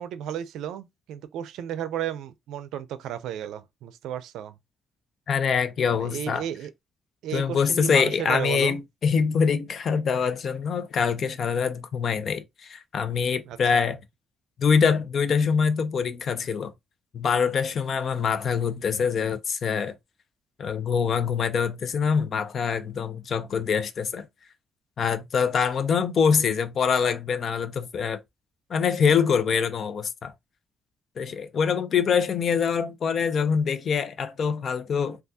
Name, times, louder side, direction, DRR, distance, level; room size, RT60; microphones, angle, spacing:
voice 1, 0.0-4.6 6.0-6.7 7.2-8.8 13.5-13.8, right 10 dB, 85° right, 0.4 m, -33 dB
voice 2, 5.3-6.4 7.3-14.0 14.6-16.7 17.1-19.9 20.6-24.3 25.0-28.2 28.7-30.3 31.2-35.2, left 6 dB, 55° left, 0.5 m, -24 dB
3.5 x 2.3 x 2.7 m
cardioid pair, 90°, 0 cm